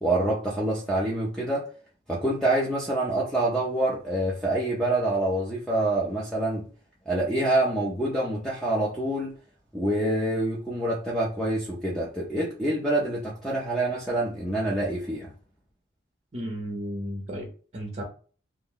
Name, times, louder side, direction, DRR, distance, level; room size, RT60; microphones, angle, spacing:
voice 1, 0.0-1.7 2.1-6.6 7.1-9.3 9.7-15.3, right 1 dB, 5° left, 0.4 m, -26 dB
voice 2, 16.3-18.0, equal, 35° right, 0.6 m, -34 dB
2.6 x 2.1 x 3.7 m
head